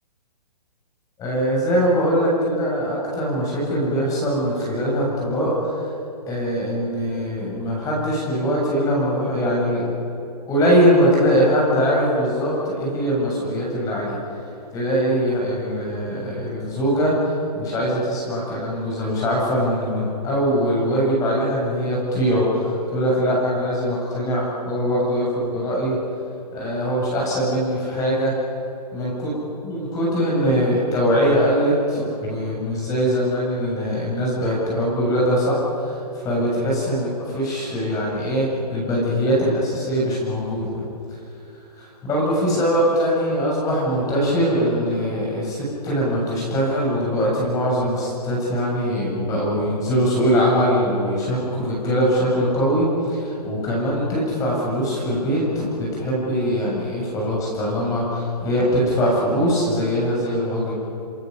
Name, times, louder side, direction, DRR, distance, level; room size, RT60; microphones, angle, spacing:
voice 1, 1.2-5.9 6.3-9.9 10.5-14.2 14.7-26.0 26.5-28.3 28.9-29.3 29.6-40.8 41.8-60.7, equal, 15° left, -4 dB, 7.6 m, -22 dB
28.0 x 22.0 x 7.0 m, 2.9 s
hypercardioid pair, 155°, 21 cm